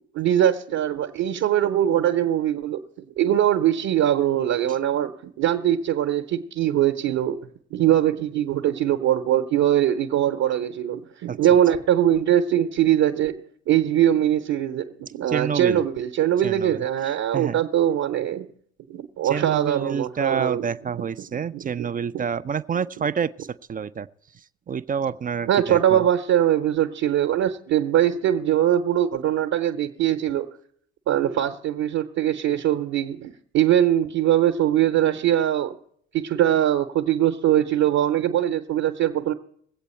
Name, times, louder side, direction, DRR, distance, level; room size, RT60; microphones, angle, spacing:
voice 1, 0.1-2.8 3.2-7.4 7.7-18.5 18.9-20.6 21.3-21.9 22.1-22.2 25.4-30.5 31.1-35.8 36.1-39.3, right 11 dB, 60° right, 1.0 m, -22 dB
voice 2, 15.3-15.8 16.4-16.8 17.3-17.6 19.2-24.1 24.7-26.0, right 7 dB, 25° right, 0.5 m, -28 dB
21.0 x 8.2 x 4.4 m
hypercardioid pair, 50°, 32 cm